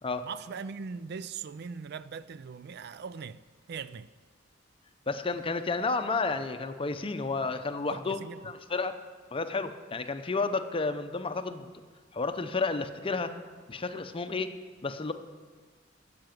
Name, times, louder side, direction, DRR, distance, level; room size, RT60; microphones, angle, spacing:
voice 1, 0.2-3.4 3.7-4.1 7.9-8.4, right 5 dB, 60° right, 0.4 m, -40 dB
voice 2, 5.1-9.0 9.3-11.7 12.1-13.3 13.7-14.5 14.8-15.1, left 3 dB, 30° left, 0.6 m, -31 dB
10.5 x 7.8 x 9.1 m
head